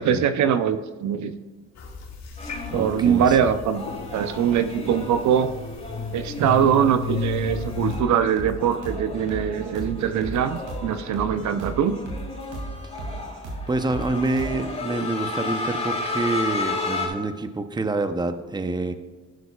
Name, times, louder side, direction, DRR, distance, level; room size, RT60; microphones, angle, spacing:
voice 1, 0.0-1.3 2.7-3.8 4.1-5.5 6.1-11.9, right 8 dB, 70° right, 10 dB, 0.7 m, -22 dB
sound 1, 1.8-7.9, left 5 dB, 60° left, 2.0 m, -34 dB
sound 2, 2.4-17.1, left 3 dB, 20° left, 2.9 m, -34 dB
voice 2, 2.7-3.5 13.7-18.9, right 2 dB, 15° right, 9 dB, 0.7 m, -27 dB
sound 3, 7.4-14.7, right 2 dB, 90° right, 2.6 m, -35 dB
11.5 x 11.0 x 2.4 m, 1.3 s
cardioid pair, 90°, 30 cm